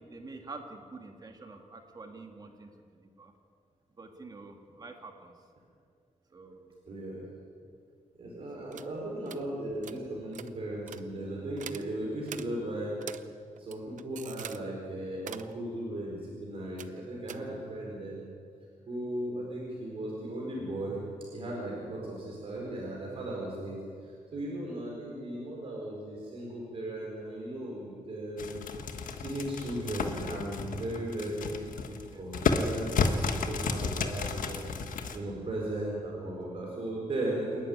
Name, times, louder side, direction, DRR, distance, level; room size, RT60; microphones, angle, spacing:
voice 1, 0.0-3.3 3.9-5.3 6.3-6.7 8.6-8.9 17.5-17.6 31.2-31.3 31.8-32.3 35.1-35.5, right 3 dB, 30° right, 3 dB, 2.0 m, -48 dB
voice 2, 6.9-7.2 8.2-12.9 13.6-18.2 18.9-21.1 21.3-23.8 24.0-28.7 29.2-34.6 35.1-37.6, right 1 dB, 45° right, -3 dB, 4.5 m, -37 dB
sound 1, 8.7-8.9 9.3-9.4 9.8-10.0 10.3-10.5 10.9-11.0 11.6-11.9 12.3-12.5 13.0-13.2 13.6-14.6 15.1-15.5 16.8-17.0 17.3-17.4, right 9 dB, 70° right, 0.8 m, -43 dB
sound 2, 28.4-35.2, left 5 dB, 85° left, 1.5 m, -32 dB
28.5 x 11.5 x 9.7 m, 2.3 s
wide cardioid pair, 175°, 13 cm